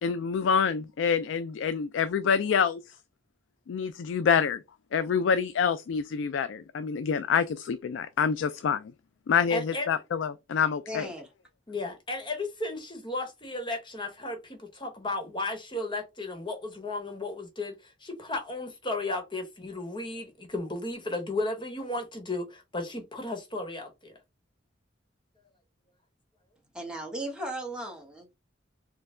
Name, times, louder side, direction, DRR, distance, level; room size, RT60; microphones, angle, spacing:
voice 1, 0.0-2.8 3.7-4.6 4.9-8.9 9.3-11.1, left 6 dB, 85° left, 0.3 m, -27 dB
voice 2, 9.5-9.9 11.7-24.1, left 2 dB, 25° left, 1.2 m, -34 dB
voice 3, 10.9-11.3 26.7-28.3, right 1 dB, 5° right, 1.2 m, -36 dB
4.3 x 2.2 x 3.7 m
head